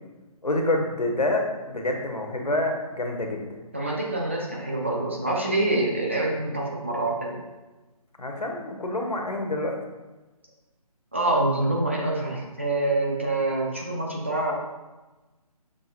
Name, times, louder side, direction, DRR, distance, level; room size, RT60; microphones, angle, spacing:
voice 1, 0.4-3.4 8.2-9.8, left 1 dB, 90° left, 2 dB, 0.8 m, -27 dB
voice 2, 3.7-7.4 11.1-14.5, right 2 dB, 20° right, -2 dB, 0.3 m, -26 dB
6.1 x 2.4 x 2.4 m, 1.1 s
figure-of-eight pair, 145°, 19 cm